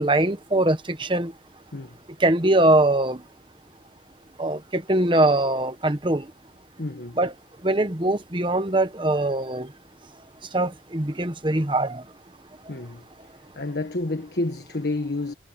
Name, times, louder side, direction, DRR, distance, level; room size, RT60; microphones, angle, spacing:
voice 1, 0.0-1.3 2.2-3.2 4.4-6.2 7.2-7.3 7.6-9.7 10.5-12.0, right 1 dB, 30° right, 1.3 m, -22 dB
voice 2, 6.8-7.2 12.7-13.0 13.5-15.3, left 2 dB, 70° left, 1.4 m, -29 dB
head